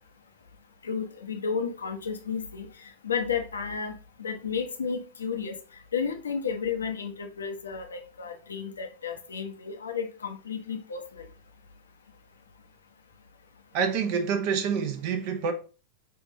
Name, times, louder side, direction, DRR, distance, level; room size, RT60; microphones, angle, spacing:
voice 1, 0.8-3.9 4.2-5.6 5.9-11.2, left 6 dB, 70° left, 0.6 m, -32 dB
voice 2, 13.7-15.5, right 6 dB, 45° right, 0.7 m, -27 dB
5.6 x 2.6 x 2.7 m
figure-of-eight pair, 90°, 0 cm